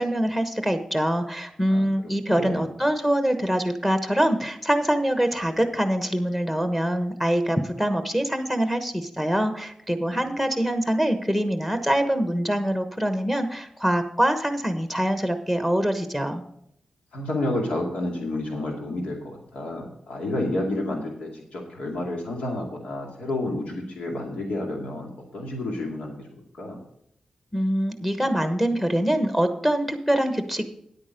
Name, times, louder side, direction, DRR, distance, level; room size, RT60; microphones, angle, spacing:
voice 1, 0.0-16.4 27.5-30.6, equal, 10° left, 8 dB, 1.1 m, -24 dB
voice 2, 2.3-2.6 10.1-10.2 17.1-26.8, left 1 dB, 85° left, 0 dB, 2.2 m, -30 dB
9.6 x 8.8 x 5.2 m, 0.73 s
cardioid pair, 70°, 2 cm